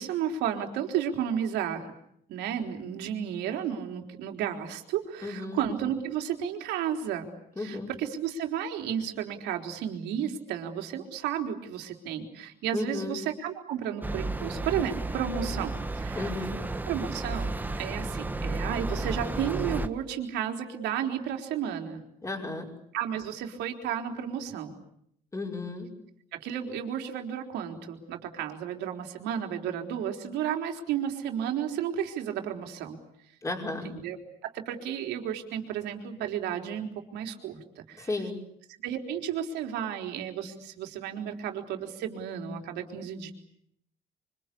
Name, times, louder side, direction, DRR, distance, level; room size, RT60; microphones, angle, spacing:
voice 1, 0.0-1.9 2.3-7.3 7.6-16.5 16.9-22.0 22.9-24.8 26.3-33.0 33.8-34.2 34.4-38.1 38.8-43.3, right 9 dB, 85° right, 4 dB, 3.9 m, -33 dB
voice 2, 5.2-5.6 7.6-7.9 12.7-13.2 16.2-16.6 22.2-22.7 25.3-25.9 33.4-33.9 38.0-38.3, left 2 dB, 20° left, 2 dB, 5.6 m, -33 dB
sound 1, 14.0-19.9, right 2 dB, 10° right, 1.6 m, -33 dB
26.0 x 25.0 x 8.5 m, 0.72 s
cardioid pair, 110°, 17 cm